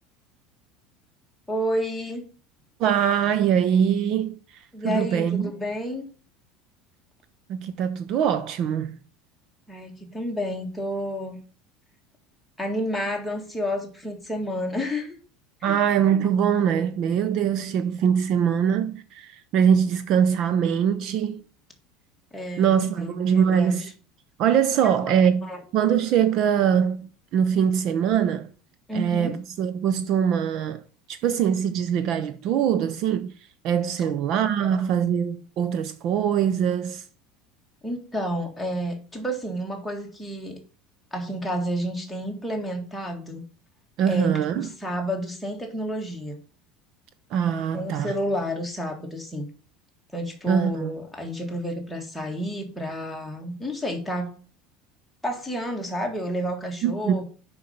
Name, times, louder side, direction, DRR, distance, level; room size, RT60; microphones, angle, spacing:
voice 1, 1.5-2.2 4.7-6.1 9.7-11.4 12.6-15.2 15.6-15.8 22.3-23.9 25.0-25.6 28.9-29.4 34.0-34.1 37.8-40.6 41.1-43.4 44.1-46.4 47.7-49.5 50.1-54.3 55.2-57.2, equal, ahead, 1.8 m, -30 dB
voice 2, 2.8-5.5 7.5-9.0 15.6-21.4 22.6-23.9 24.4-28.5 28.9-30.8 31.1-33.3 33.6-37.0 44.0-44.7 47.3-48.1 50.5-50.9 56.8-57.2, right 8 dB, 45° right, 0.6 m, -23 dB
6.8 x 5.4 x 5.5 m
cardioid pair, 165°, 0 cm